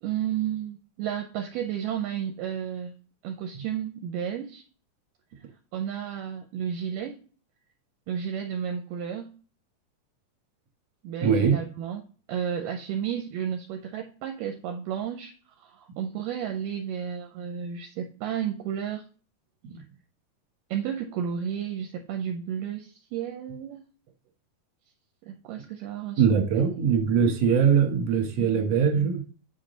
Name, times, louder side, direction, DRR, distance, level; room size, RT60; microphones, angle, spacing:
voice 1, 0.0-2.9 3.2-4.6 5.7-7.2 8.1-9.3 11.0-12.0 12.3-19.0 20.7-23.8 25.2-26.5 26.8-26.9, right 9 dB, 80° right, 5 dB, 2.1 m, -32 dB
voice 2, 11.2-11.6 26.2-29.2, right 7 dB, 60° right, 3 dB, 2.1 m, -22 dB
8.4 x 3.7 x 3.8 m, 0.40 s
omnidirectional pair, 4.1 m